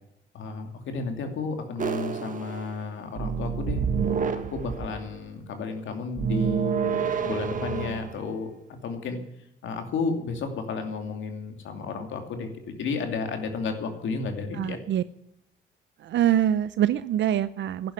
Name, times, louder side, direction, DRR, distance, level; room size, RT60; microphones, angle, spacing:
voice 1, 0.3-3.8 4.3-8.5 8.8-9.2 9.6-14.8, left 4 dB, 75° left, 5 dB, 2.7 m, -32 dB
sound 1, 1.8-2.9 3.2-5.1 6.2-8.2, right 7 dB, 40° right, 1.5 m, -28 dB
voice 2, 14.5-15.0 16.0-17.9, right 11 dB, 65° right, 14 dB, 0.6 m, -24 dB
11.0 x 11.0 x 9.8 m, 0.80 s
cardioid pair, 90°, 20 cm